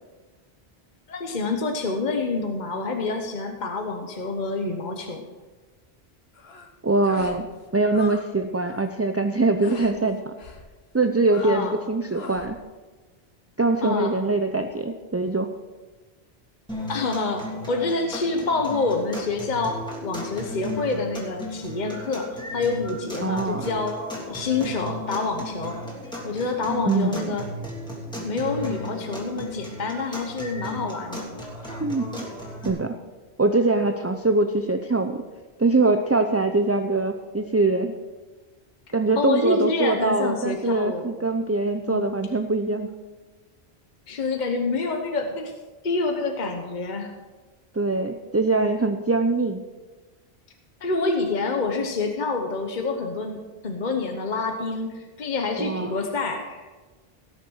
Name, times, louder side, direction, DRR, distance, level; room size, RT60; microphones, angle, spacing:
voice 1, 1.1-5.2 11.4-11.7 13.8-14.1 16.9-19.7 20.0-24.0 24.3-25.8 26.2-27.5 28.2-31.3 39.2-41.0 41.9-42.0 44.1-45.5 45.8-47.1 50.8-56.8, left 3 dB, 45° left, 4 dB, 1.2 m, -27 dB
sound 1, 6.3-6.7 7.0-7.4 7.7-8.3 8.5-8.9 9.6-10.0 10.4-10.7 11.2-11.8 12.1-12.5, left 5 dB, 75° left, 1.4 m, -41 dB
voice 2, 6.8-7.5 7.7-10.3 10.9-12.6 13.6-15.5 23.2-23.7 26.9-27.3 31.8-32.3 32.6-32.9 33.4-35.2 35.6-37.9 38.9-42.9 47.7-49.6 55.6-55.9, right 3 dB, 20° right, 6 dB, 0.4 m, -23 dB
sound 2, 16.7-32.7, equal, 5° left, 3.1 m, -35 dB
17.5 x 6.6 x 6.3 m, 1.3 s
omnidirectional pair, 1.1 m